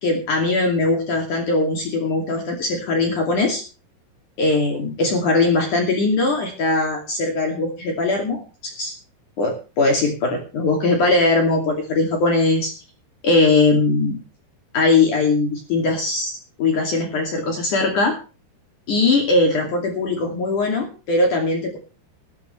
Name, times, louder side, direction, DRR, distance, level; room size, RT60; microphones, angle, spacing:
voice 1, 0.0-3.6 4.4-8.9 9.4-12.7 13.2-14.2 14.7-18.2 18.9-21.8, left 3 dB, 50° left, 2 dB, 3.8 m, -20 dB
16.0 x 15.0 x 3.3 m, 0.34 s
omnidirectional pair, 4.7 m